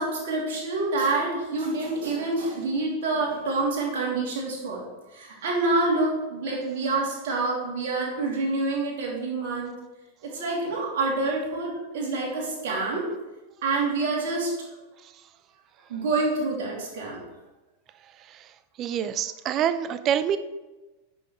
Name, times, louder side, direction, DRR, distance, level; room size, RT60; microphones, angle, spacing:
voice 1, 0.0-4.8 5.1-9.7 10.2-13.1 13.6-14.5 15.9-17.2, right 3 dB, 55° right, -3 dB, 3.0 m, -27 dB
voice 2, 18.8-20.4, right 9 dB, 30° right, 12 dB, 0.6 m, -26 dB
9.8 x 5.9 x 4.7 m, 1.1 s
figure-of-eight pair, 90°, 0 cm